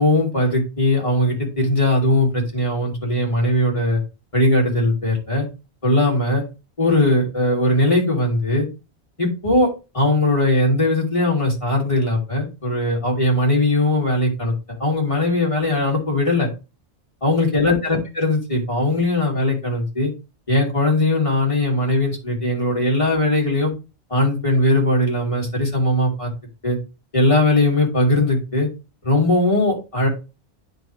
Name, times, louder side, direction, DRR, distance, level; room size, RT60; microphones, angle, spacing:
voice 1, 0.0-4.0 4.3-5.5 5.8-6.4 6.8-8.7 9.2-9.7 9.9-14.5 14.8-16.5 17.2-20.1 20.5-23.7 24.1-26.3 26.6-26.8 27.1-28.7 29.0-30.1, left 1 dB, 30° left, -2 dB, 2.6 m, -19 dB
9.9 x 4.1 x 3.0 m, 0.29 s
omnidirectional pair, 1.1 m